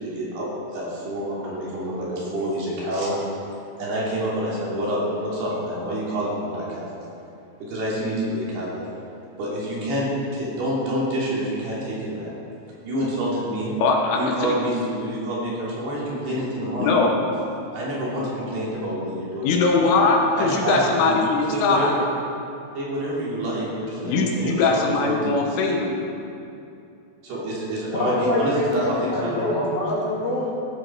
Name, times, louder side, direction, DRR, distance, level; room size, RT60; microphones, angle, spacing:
voice 1, 0.0-3.2 3.8-6.9 7.6-8.9 9.4-12.4 12.8-13.8 14.1-17.1 17.7-19.6 20.3-21.2 21.5-22.0 22.7-25.2 27.2-29.5, right 1 dB, 55° right, -7 dB, 5.0 m, -27 dB
voice 2, 13.8-14.7 16.8-17.2 19.4-21.9 24.0-26.1, left 3 dB, 75° left, 1 dB, 3.7 m, -21 dB
voice 3, 28.0-30.5, left 1 dB, 55° left, -5 dB, 3.3 m, -25 dB
17.0 x 12.5 x 4.7 m, 2.7 s
omnidirectional pair, 5.9 m